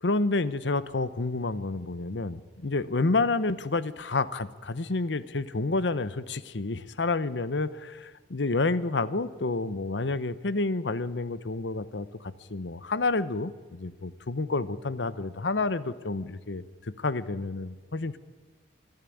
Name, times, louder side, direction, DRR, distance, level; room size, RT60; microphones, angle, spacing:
voice 1, 0.0-18.2, left 3 dB, 90° left, 16 dB, 0.9 m, -29 dB
26.0 x 11.0 x 9.3 m, 1.4 s
head